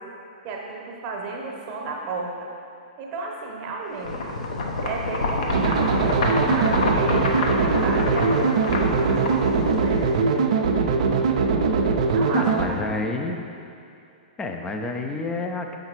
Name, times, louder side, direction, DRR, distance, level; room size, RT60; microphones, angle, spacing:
voice 1, 0.4-2.5 3.0-4.4 4.8-9.4 9.7-10.0 12.1-13.3, right 3 dB, 30° right, 0 dB, 0.9 m, -33 dB
sound 1, 4.0-10.2, left 2 dB, 60° left, 0.7 m, -27 dB
sound 2, 5.5-12.7, right 4 dB, 50° right, 0.4 m, -21 dB
voice 2, 12.3-13.4 14.4-15.8, left 3 dB, 15° left, 4 dB, 0.4 m, -29 dB
7.1 x 5.0 x 3.0 m, 2.6 s
figure-of-eight pair, 110°, 4 cm